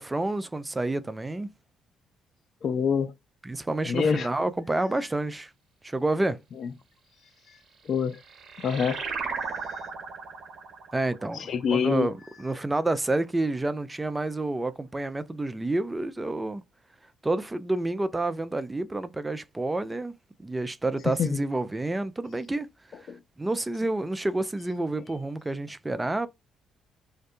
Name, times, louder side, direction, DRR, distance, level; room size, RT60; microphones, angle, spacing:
voice 1, 0.0-1.5 3.4-5.5 5.8-6.4 10.9-11.4 11.7-16.6 17.2-20.1 20.4-22.7 23.4-26.3, right 2 dB, 15° right, 0.3 m, -29 dB
voice 2, 2.6-3.1 3.8-4.3 6.6-6.7 7.9-8.2 8.6-9.0 9.6-9.7 11.3-12.1 21.2-21.4 23.1-23.2, left 6 dB, 60° left, 0.4 m, -26 dB
sound 1, 7.7-12.8, right 5 dB, 55° right, 1.0 m, -37 dB
2.6 x 2.2 x 2.4 m
supercardioid pair, 70°, 0 cm